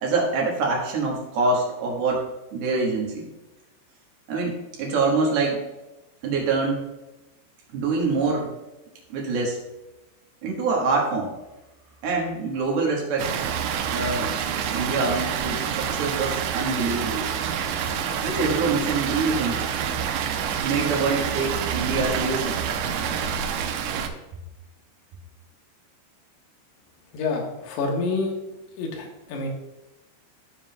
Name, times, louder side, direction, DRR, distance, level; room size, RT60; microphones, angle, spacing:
voice 1, 0.0-2.2 2.5-3.3 4.3-5.6 6.2-6.9 7.7-8.5 9.1-9.6 10.4-11.3 12.0-13.3 13.9-14.3 14.7-17.3 18.2-19.6 20.6-22.5, right 3 dB, 65° right, -2 dB, 2.7 m, -25 dB
Water, 13.2-24.1, right 8 dB, 90° right, 2.5 m, -27 dB
voice 2, 27.1-28.3 28.8-29.5, left 3 dB, 65° left, 0 dB, 2.9 m, -27 dB
13.5 x 7.3 x 2.3 m, 1.0 s
omnidirectional pair, 5.9 m